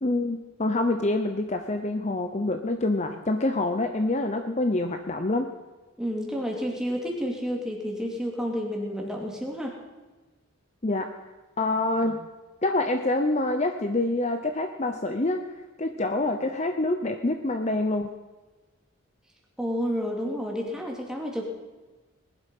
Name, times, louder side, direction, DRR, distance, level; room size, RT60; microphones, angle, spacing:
voice 1, 0.0-5.5 10.8-11.1 11.6-12.3 12.6-15.4 15.8-18.1, left 2 dB, 30° left, 6 dB, 0.8 m, -26 dB
voice 2, 6.0-9.8 19.6-21.5, equal, 5° right, -1 dB, 2.6 m, -30 dB
20.0 x 11.5 x 5.4 m, 1.2 s
head